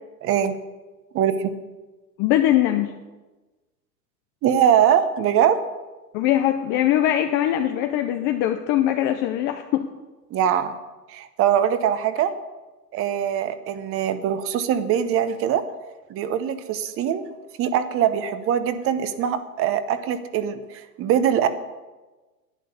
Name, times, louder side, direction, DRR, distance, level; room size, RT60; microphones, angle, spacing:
voice 1, 0.2-0.6 1.1-1.5 4.4-5.6 10.3-10.7 11.1-12.3 12.9-15.6 16.1-21.5, right 9 dB, 25° right, 11 dB, 0.9 m, -22 dB
voice 2, 2.2-2.9 6.1-9.9, left 12 dB, 25° left, 7 dB, 0.4 m, -21 dB
11.0 x 9.5 x 6.8 m, 1.2 s
hypercardioid pair, 110°, 50 cm